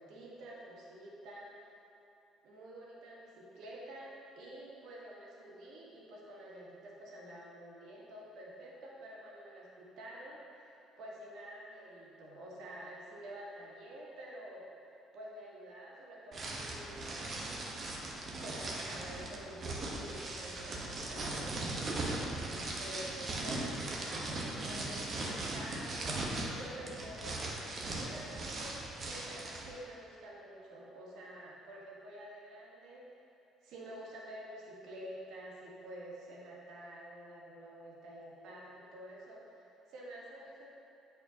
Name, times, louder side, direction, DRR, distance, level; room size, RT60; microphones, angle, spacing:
voice 1, 0.0-1.7 2.4-17.4 18.3-21.8 22.4-27.6 28.0-33.1 33.6-40.7, right 1 dB, 65° right, -4 dB, 1.5 m, -49 dB
sound 1, 16.3-29.7, right 2 dB, 45° right, 1.2 m, -39 dB
8.5 x 6.6 x 2.9 m, 2.8 s
hypercardioid pair, 55°, 0 cm